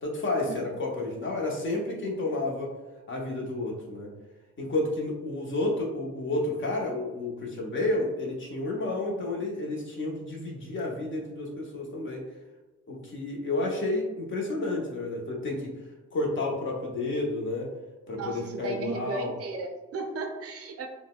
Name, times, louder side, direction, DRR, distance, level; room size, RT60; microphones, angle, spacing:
voice 1, 0.0-2.7 3.1-4.1 4.6-12.2 12.9-15.7 16.1-17.7 18.1-19.3, left 2 dB, 40° left, -1 dB, 0.8 m, -31 dB
voice 2, 18.1-20.9, right 3 dB, 50° right, 4 dB, 0.5 m, -35 dB
3.8 x 2.1 x 2.3 m, 1.2 s
cardioid pair, 90°, 30 cm